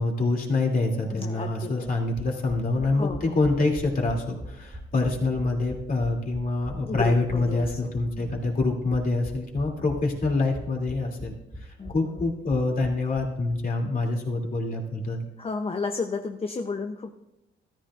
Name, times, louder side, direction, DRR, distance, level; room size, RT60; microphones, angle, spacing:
voice 1, 0.0-11.3 11.9-15.2, left 3 dB, 45° left, 0 dB, 2.7 m, -26 dB
voice 2, 1.1-1.9 2.9-3.4 6.9-7.9 8.2-8.5 11.8-12.2 15.4-17.1, left 4 dB, 30° left, 4 dB, 0.7 m, -33 dB
sound 1, 3.1-13.6 13.8-13.9 14.2-14.3, equal, 15° right, 2.3 m, -41 dB
14.0 x 13.5 x 2.5 m, 0.92 s
cardioid pair, 90°, 20 cm